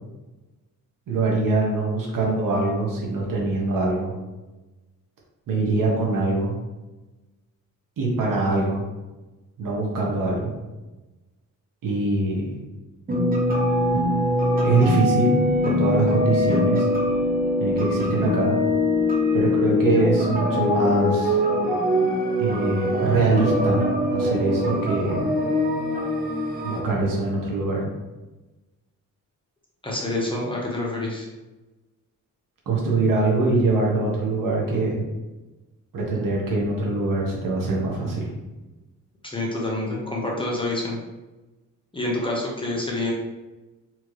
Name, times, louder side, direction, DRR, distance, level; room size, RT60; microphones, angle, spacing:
voice 1, 1.1-4.1 5.5-6.6 8.0-8.8 9.6-10.5 11.8-12.5 14.6-16.9 17.6-18.6 19.3-21.4 22.4-23.9 24.1-25.3 26.6-27.9 32.7-35.0 35.9-38.3, right 2 dB, 80° right, -2 dB, 1.2 m, -23 dB
sound 1, 13.1-26.8, left 1 dB, 25° right, 0.7 m, -23 dB
voice 2, 29.8-31.3 39.2-41.0 41.9-43.1, left 2 dB, 15° left, -3 dB, 0.8 m, -27 dB
4.4 x 3.0 x 3.1 m, 1.1 s
wide cardioid pair, 140°, 32 cm